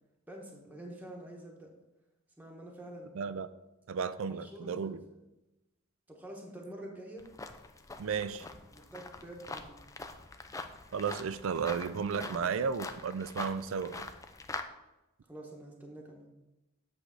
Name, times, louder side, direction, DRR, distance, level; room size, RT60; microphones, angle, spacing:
voice 1, 0.3-1.7 2.4-3.2 4.3-4.9 6.1-7.3 8.7-9.9 12.2-12.5 15.3-16.3, right 1 dB, 10° right, -1 dB, 1.0 m, -47 dB
voice 2, 3.2-3.5 3.9-5.0 8.0-8.5 10.9-14.1, right 6 dB, 65° right, 14 dB, 0.4 m, -33 dB
sound 1, 7.2-14.6, left 3 dB, 15° left, 0.4 m, -44 dB
8.0 x 3.3 x 6.2 m, 0.98 s
head